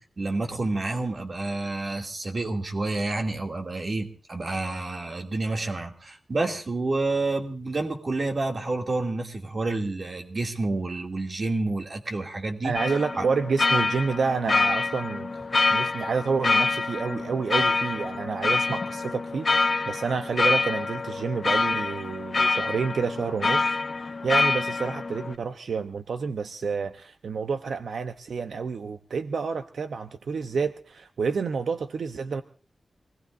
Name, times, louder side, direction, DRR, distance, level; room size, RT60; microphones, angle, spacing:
voice 1, 0.0-12.7 13.2-13.3, right 2 dB, 45° right, 3 dB, 2.6 m, -29 dB
voice 2, 12.6-15.4 15.7-32.4, right 5 dB, 85° right, 9 dB, 0.8 m, -29 dB
sound 1, 12.8-25.3, left 3 dB, 45° left, 0.7 m, -26 dB
26.5 x 18.5 x 2.6 m, 0.39 s
wide cardioid pair, 130°, 0 cm